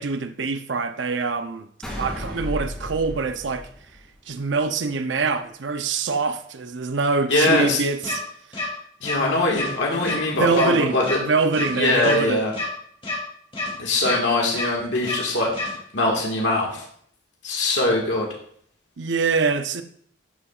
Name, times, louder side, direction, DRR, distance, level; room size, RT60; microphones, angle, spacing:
voice 1, 0.0-1.7 2.0-3.7 4.3-8.2 10.4-12.4 19.0-19.8, right 4 dB, 70° right, 0.6 m, -24 dB
sound 1, 1.8-4.4, left 1 dB, 5° left, 2.7 m, -34 dB
voice 2, 7.3-7.8 9.0-11.2 11.7-12.5 13.8-16.8 17.4-18.2, left 2 dB, 65° left, 1.8 m, -22 dB
sound 2, 8.0-8.2 8.5-8.7 9.0-9.2 9.5-9.7 10.0-10.2 10.5-10.7 11.0-11.2 11.5-11.7 12.0-12.2 12.5-12.7 13.0-13.2 13.5-13.7 14.0-14.2 14.5-14.7 15.0-15.2 15.5-15.7, left 3 dB, 30° left, 2.9 m, -28 dB
12.5 x 7.1 x 2.4 m
head